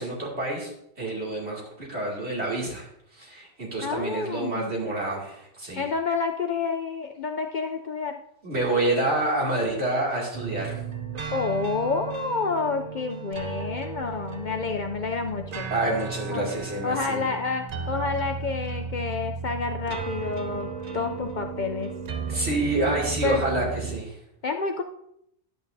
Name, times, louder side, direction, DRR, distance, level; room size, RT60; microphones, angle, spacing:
voice 1, 0.0-2.9 3.1-5.9 8.4-10.8 15.7-17.2 22.3-24.2, right 2 dB, 70° right, -3 dB, 2.7 m, -28 dB
voice 2, 3.8-4.7 5.8-8.2 11.3-15.7 16.3-16.5 16.8-21.9 23.2-23.4 24.4-24.8, left 4 dB, 55° left, 4 dB, 0.6 m, -29 dB
sound 1, 10.3-24.0, right 6 dB, 45° right, 0.6 m, -35 dB
10.5 x 8.7 x 2.6 m, 0.75 s
omnidirectional pair, 1.2 m